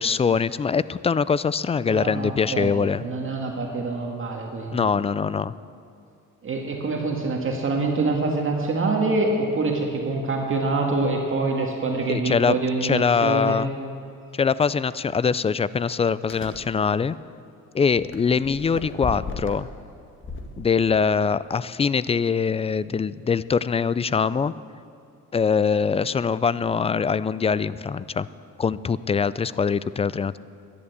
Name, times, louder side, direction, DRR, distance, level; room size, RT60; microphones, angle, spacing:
voice 1, 0.0-3.0 4.7-5.5 12.1-13.7 14.3-17.2 17.7-19.7 20.6-24.5 25.3-28.3 28.6-30.4, left 6 dB, 20° left, 17 dB, 0.3 m, -23 dB
voice 2, 1.9-4.9 6.4-13.7, right 3 dB, 45° right, 1 dB, 1.8 m, -25 dB
sound 1, 14.3-14.4 14.9-15.1 16.2-16.7 17.9-19.7 20.2-21.3, left 3 dB, 40° left, 1.8 m, -36 dB
11.5 x 11.0 x 8.1 m, 2.4 s
cardioid pair, 90°, 30 cm